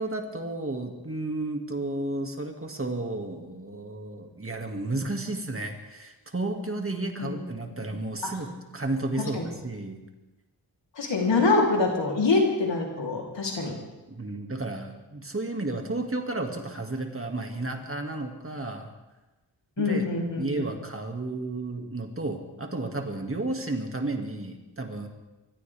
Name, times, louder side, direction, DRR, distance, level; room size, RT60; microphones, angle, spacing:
voice 1, 0.0-10.0 14.1-18.9 19.8-20.1 20.4-25.1, right 2 dB, 30° right, 3 dB, 2.3 m, -32 dB
voice 2, 11.0-13.8 19.8-20.6, left 3 dB, 80° left, -1 dB, 3.6 m, -25 dB
24.0 x 14.5 x 3.6 m, 1.1 s
cardioid pair, 60°, 43 cm